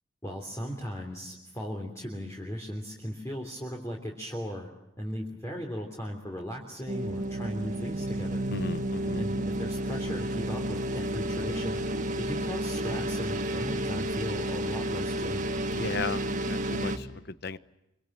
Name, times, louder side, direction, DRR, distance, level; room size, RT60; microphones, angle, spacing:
voice 1, 0.2-4.7 5.0-8.5 9.1-11.9 12.2-15.6, equal, 15° left, 0 dB, 3.3 m, -37 dB
sound 1, 6.9-17.0, right 1 dB, 40° right, 2.0 m, -31 dB
voice 2, 8.5-9.2 15.7-17.6, left 3 dB, 55° left, 14 dB, 0.9 m, -36 dB
26.0 x 25.5 x 7.6 m, 0.92 s
head